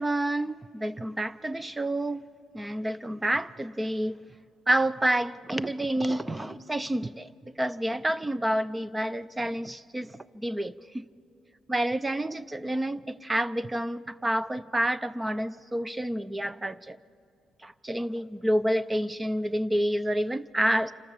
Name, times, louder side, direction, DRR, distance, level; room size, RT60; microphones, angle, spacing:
voice 1, 0.0-2.2 2.5-4.2 4.7-7.3 7.6-11.0 11.7-17.0 17.6-20.9, right 1 dB, 15° right, 0.6 m, -29 dB
27.5 x 25.5 x 7.2 m
cardioid pair, 90°, 0 cm